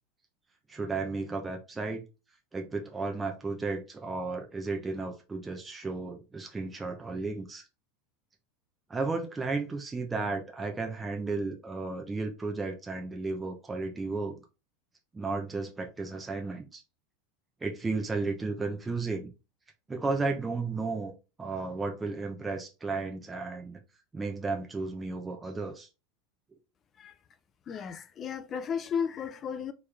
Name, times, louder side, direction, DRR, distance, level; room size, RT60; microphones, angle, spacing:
voice 1, 0.7-2.0 2.5-7.6 8.9-14.4 15.1-16.8 17.6-19.3 19.9-21.1 21.4-23.8 24.1-25.9, right 3 dB, 15° right, 1.0 m, -33 dB
voice 2, 27.7-29.7, left 7 dB, 35° left, 0.6 m, -34 dB
4.3 x 3.4 x 3.5 m
supercardioid pair, 110°, 0 cm